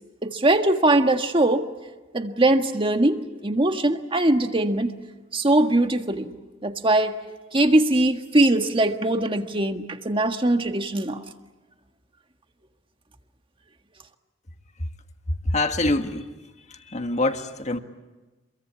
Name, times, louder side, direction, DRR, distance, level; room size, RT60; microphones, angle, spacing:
voice 1, 0.2-1.7 2.1-4.9 5.3-6.3 6.6-7.2 7.5-11.2, right 1 dB, 30° right, 6 dB, 1.6 m, -21 dB
voice 2, 15.3-16.3 16.7-17.8, left 2 dB, 40° left, 7 dB, 1.7 m, -25 dB
27.5 x 22.5 x 8.6 m, 1.2 s
head